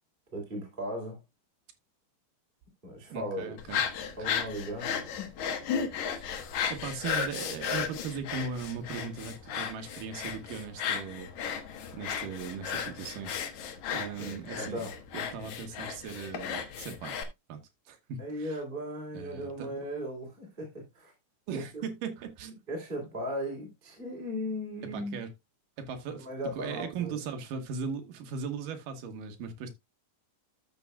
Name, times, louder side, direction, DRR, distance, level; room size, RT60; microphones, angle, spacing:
voice 1, 0.3-1.2 2.8-3.6 4.2-5.1 14.2-15.0 18.2-21.1 21.5-21.8 22.7-25.2 26.1-27.2, equal, 15° right, 2.7 m, -37 dB
voice 2, 3.1-3.8 4.2-4.3 6.7-11.3 11.9-13.4 13.9-14.8 15.1-17.2 17.5-18.6 19.1-19.7 21.5-22.6 24.9-25.3 25.8-26.3 26.6-29.7, right 6 dB, 75° right, 2.0 m, -38 dB
sound 1, 3.6-17.2, left 7 dB, 75° left, 1.7 m, -35 dB
13.5 x 6.8 x 2.3 m
omnidirectional pair, 5.3 m